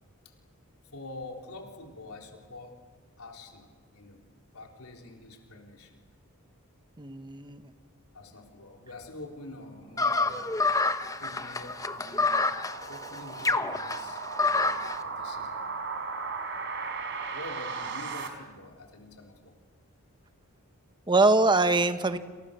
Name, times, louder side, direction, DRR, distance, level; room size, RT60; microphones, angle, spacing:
voice 1, 0.8-2.8 3.2-4.2 4.5-6.0 8.1-10.6 11.2-12.4 12.9-15.9 17.3-19.5, left 2 dB, 80° left, 2 dB, 4.1 m, -46 dB
voice 2, 7.0-7.6 21.1-22.2, right 3 dB, 20° right, 9 dB, 1.3 m, -23 dB
sound 1, 9.6-18.3, right 4 dB, 55° right, 4.0 m, -38 dB
sound 2, 10.0-15.0, left 3 dB, 15° left, 1.1 m, -27 dB
29.5 x 28.0 x 6.9 m, 1.4 s
head